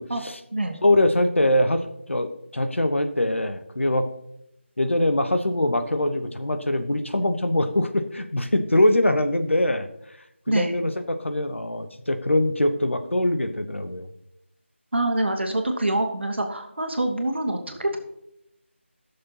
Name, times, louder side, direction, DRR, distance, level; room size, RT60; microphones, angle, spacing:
voice 1, 0.8-4.1 4.8-9.9 10.5-14.1, left 1 dB, 75° left, 8 dB, 1.0 m, -23 dB
voice 2, 14.9-18.0, right 1 dB, 60° right, 4 dB, 1.6 m, -25 dB
14.5 x 6.7 x 2.9 m, 0.78 s
figure-of-eight pair, 165°, 7 cm